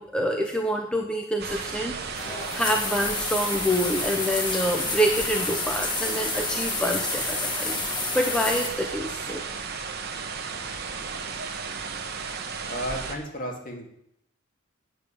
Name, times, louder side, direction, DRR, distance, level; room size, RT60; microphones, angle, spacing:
voice 1, 0.0-9.4, equal, 5° left, 2 dB, 0.8 m, -27 dB
sound 1, 1.4-13.2, right 5 dB, 50° right, 1.2 m, -34 dB
sound 2, 2.0-8.7, left 4 dB, 20° left, 1.3 m, -30 dB
voice 2, 12.7-13.9, equal, 40° left, 2 dB, 2.3 m, -33 dB
8.8 x 7.3 x 8.4 m, 0.75 s
head